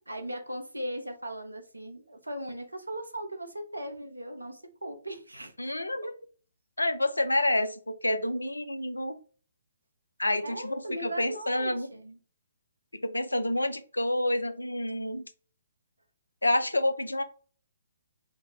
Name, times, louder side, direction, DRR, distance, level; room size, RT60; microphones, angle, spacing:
voice 1, 0.1-5.7 6.0-6.1 10.4-12.2, right 1 dB, 85° right, 6 dB, 0.7 m, -38 dB
voice 2, 5.6-6.1 6.8-9.2 10.2-11.9 12.9-15.3 16.4-17.2, left 1 dB, 85° left, 10 dB, 0.4 m, -28 dB
3.6 x 2.0 x 3.5 m, 0.40 s
figure-of-eight pair, 130°, 0 cm